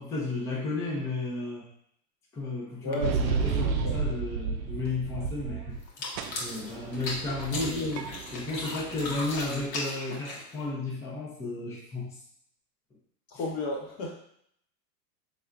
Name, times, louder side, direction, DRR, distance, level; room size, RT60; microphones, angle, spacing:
voice 1, 0.0-1.7 2.3-6.1 6.4-12.2, left 3 dB, 5° left, -4 dB, 0.4 m, -33 dB
voice 2, 2.8-4.1 7.6-7.9 13.3-14.1, left 2 dB, 30° left, 0 dB, 0.8 m, -34 dB
sound 1, 3.0-5.9 6.2-9.7, right 6 dB, 90° right, 0.6 m, -32 dB
sound 2, 5.8-10.7, left 2 dB, 75° left, 1.5 m, -37 dB
4.2 x 3.4 x 2.4 m, 0.68 s
supercardioid pair, 135°, 49 cm